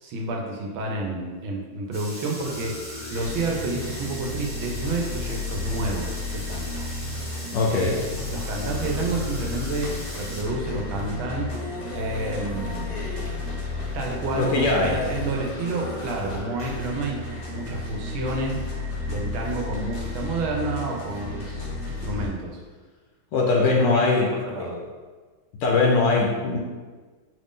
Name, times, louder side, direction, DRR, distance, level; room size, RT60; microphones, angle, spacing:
voice 1, 0.0-6.9 7.7-8.0 8.3-13.2 13.9-17.2 17.5-18.6 19.1-22.6 23.7-24.8, right 2 dB, 85° right, 0 dB, 1.6 m, -30 dB
sound 1, 1.9-10.4, equal, 10° left, 0.4 m, -40 dB
sound 2, 2.4-22.3, left 2 dB, 50° left, 0.8 m, -32 dB
voice 2, 7.5-8.0 14.3-15.0 23.3-24.8 25.6-26.6, left 3 dB, 75° left, -1 dB, 1.2 m, -21 dB
5.6 x 2.6 x 3.6 m, 1.4 s
omnidirectional pair, 2.2 m